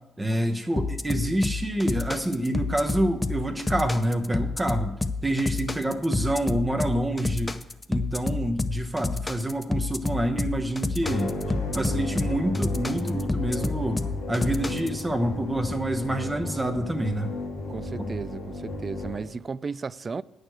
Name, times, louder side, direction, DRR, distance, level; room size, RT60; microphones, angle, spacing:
voice 1, 0.2-4.9 5.2-7.6 7.9-11.3 11.7-17.3 18.0-18.1, right 1 dB, 15° right, 0.9 m, -27 dB
sound 1, 0.8-15.0, left 3 dB, 20° left, 0.6 m, -29 dB
sound 2, 11.0-19.2, left 2 dB, 80° left, 2.5 m, -33 dB
voice 2, 17.7-20.2, right 5 dB, 35° right, 0.3 m, -34 dB
8.8 x 6.5 x 7.8 m
cardioid pair, 90°, 0 cm